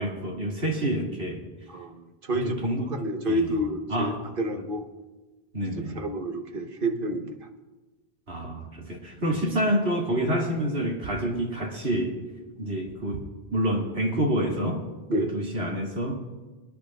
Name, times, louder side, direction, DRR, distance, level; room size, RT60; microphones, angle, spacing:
voice 1, 0.0-1.4 2.4-2.9 3.3-3.6 3.9-4.2 5.5-6.0 8.3-12.1 12.6-13.2 13.5-14.8 15.2-16.2, right 1 dB, 80° right, -2 dB, 2.7 m, -27 dB
voice 2, 1.7-2.6 2.9-4.9 6.0-7.4 15.1-15.3, right 1 dB, 55° right, 4 dB, 1.3 m, -29 dB
27.0 x 10.5 x 2.4 m, 1.2 s
omnidirectional pair, 1.1 m